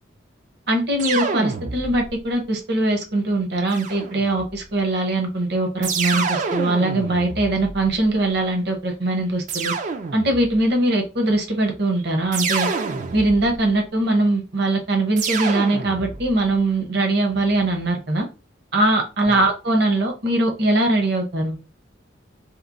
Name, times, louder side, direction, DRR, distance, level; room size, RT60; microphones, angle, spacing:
voice 1, 0.7-9.7 10.1-12.7 13.1-18.3 18.7-21.6, right 2 dB, 55° right, 3 dB, 0.8 m, -21 dB
sound 1, 1.0-2.2 3.7-4.6 5.8-8.1 9.5-10.6 12.3-13.7 15.2-16.4, right 5 dB, 40° right, 0.3 m, -28 dB
2.9 x 2.0 x 2.5 m, 0.30 s
head